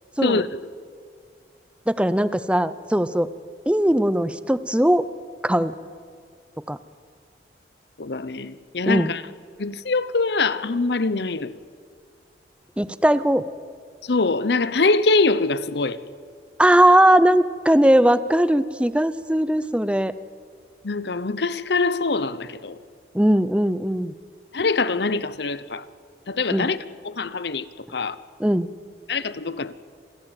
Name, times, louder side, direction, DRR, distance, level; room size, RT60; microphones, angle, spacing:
voice 1, 1.9-3.3 3.7-5.1 5.4-5.7 6.7-6.8 8.9-9.1 12.8-13.5 16.6-20.1 23.1-24.1 26.5-26.7 28.4-28.7, right 1 dB, 5° right, 0.6 m, -19 dB
voice 2, 8.0-9.2 9.6-11.5 14.1-16.0 20.8-22.8 24.5-25.8 26.3-26.8 27.0-27.6 27.9-28.1 29.1-29.7, left 3 dB, 70° left, 0.8 m, -23 dB
27.5 x 16.0 x 9.0 m
head